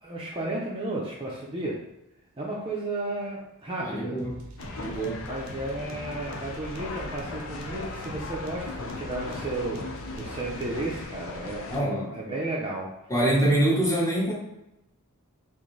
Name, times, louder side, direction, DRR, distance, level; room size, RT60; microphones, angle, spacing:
voice 1, 0.0-1.8 2.4-4.2 5.2-9.8 10.1-12.9, right 2 dB, 25° right, -4 dB, 0.5 m, -33 dB
voice 2, 3.8-4.3 4.8-5.2 11.7-12.2 13.1-14.3, right 1 dB, 15° left, -5 dB, 0.9 m, -25 dB
sound 1, 4.2-11.0, right 1 dB, 70° right, 0.6 m, -44 dB
sound 2, 4.6-11.8, left 3 dB, 60° left, 0.5 m, -38 dB
3.8 x 2.5 x 3.1 m, 0.87 s
head